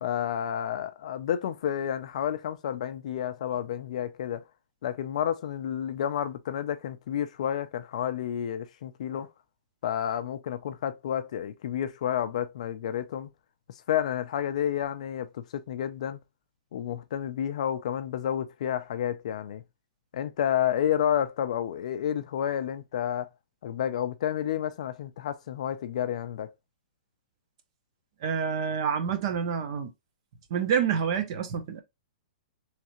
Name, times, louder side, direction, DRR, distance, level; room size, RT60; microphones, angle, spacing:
voice 1, 0.0-4.4 4.8-9.3 9.8-13.3 13.9-16.2 16.7-19.6 20.1-23.3 23.6-26.5, left 10 dB, 45° left, 0.4 m, -30 dB
voice 2, 28.2-29.9 30.5-31.8, right 7 dB, 35° right, 0.6 m, -28 dB
3.6 x 3.2 x 2.9 m
hypercardioid pair, 175°, 5 cm